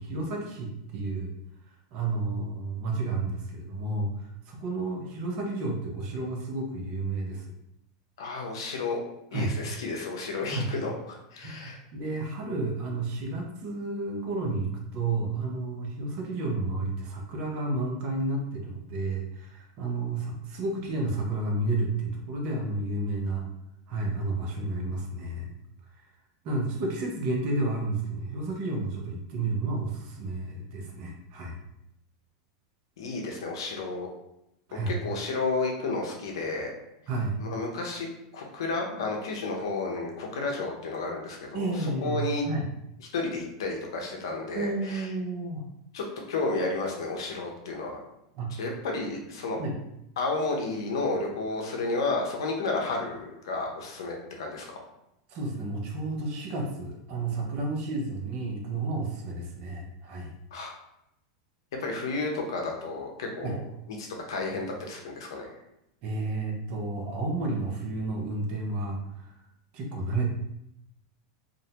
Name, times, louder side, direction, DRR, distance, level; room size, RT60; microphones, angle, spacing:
voice 1, 0.0-1.3 1.9-7.5 9.3-9.5 10.5-10.7 11.4-23.5 23.9-25.5 26.4-31.6 34.7-34.9 37.1-37.3 41.5-42.6 44.5-45.6 48.4-48.5 49.6-49.7 55.3-60.3 63.4-63.6 66.0-69.3 69.7-70.3, right 2 dB, 50° right, 1 dB, 0.6 m, -31 dB
voice 2, 8.2-9.0 9.3-11.8 33.0-34.1 34.9-36.7 37.4-38.1 38.3-41.7 42.0-42.4 43.1-45.1 45.9-48.0 48.5-49.6 50.2-54.8 60.5-60.7 61.8-63.6 64.0-65.5, left 3 dB, 80° left, 1 dB, 0.6 m, -32 dB
2.5 x 2.0 x 2.8 m, 0.83 s
supercardioid pair, 130°, 2 cm